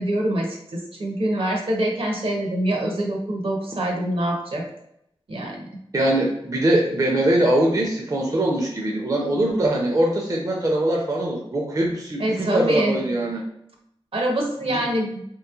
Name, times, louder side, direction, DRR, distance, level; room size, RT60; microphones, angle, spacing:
voice 1, 0.0-4.6 5.3-5.6 12.2-13.0 14.1-15.2, right 1 dB, 65° right, 0 dB, 0.7 m, -25 dB
voice 2, 5.9-13.4 14.7-14.8, right 1 dB, 35° right, -1 dB, 0.5 m, -22 dB
3.0 x 3.0 x 2.3 m, 0.76 s
wide cardioid pair, 90°, 10 cm